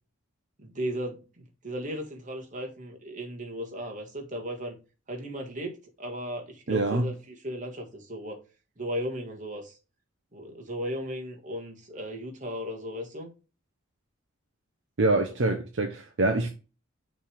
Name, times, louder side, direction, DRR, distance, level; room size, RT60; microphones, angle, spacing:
voice 1, 0.6-4.8 5.1-8.4 8.8-9.8 10.3-13.3, equal, 35° right, 1.5 m, -36 dB
voice 2, 6.7-7.1 15.0-16.5, right 2 dB, 60° right, 0.7 m, -25 dB
6.1 x 3.4 x 5.0 m
head